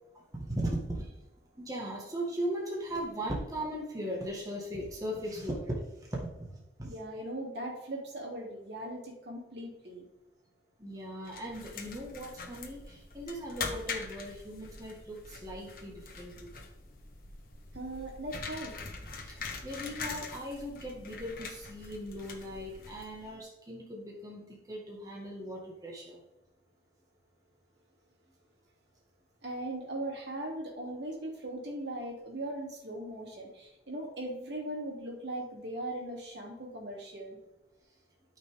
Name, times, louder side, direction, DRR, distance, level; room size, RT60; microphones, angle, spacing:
voice 1, 0.3-1.1 1.6-5.8 6.1-6.5 6.8-6.9 10.8-16.3 19.2-19.4 19.6-26.2, equal, 20° right, -3 dB, 1.6 m, -38 dB
voice 2, 6.8-10.0 17.7-18.7 29.4-37.4, right 1 dB, 70° right, -1 dB, 2.9 m, -39 dB
sound 1, 11.3-23.3, left 4 dB, 50° left, 1.4 m, -43 dB
13.0 x 5.8 x 3.6 m, 1.0 s
head